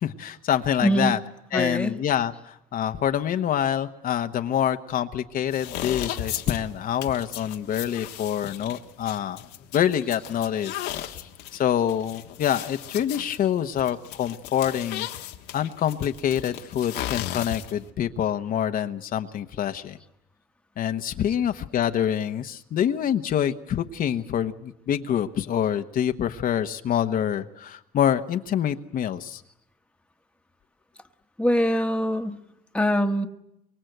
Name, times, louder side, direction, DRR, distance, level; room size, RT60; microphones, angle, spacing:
voice 1, 0.0-1.2 1.5-9.5 9.7-15.1 15.5-20.0 20.8-29.4, left 10 dB, 55° left, 7 dB, 1.0 m, -26 dB
voice 2, 0.8-1.2 1.5-2.0 31.4-32.4 32.7-33.3, equal, 5° left, 6 dB, 1.3 m, -23 dB
sound 1, 5.5-17.9, left 12 dB, 90° left, 1.5 m, -36 dB
24.0 x 22.5 x 8.0 m, 0.83 s
cardioid pair, 110°, 17 cm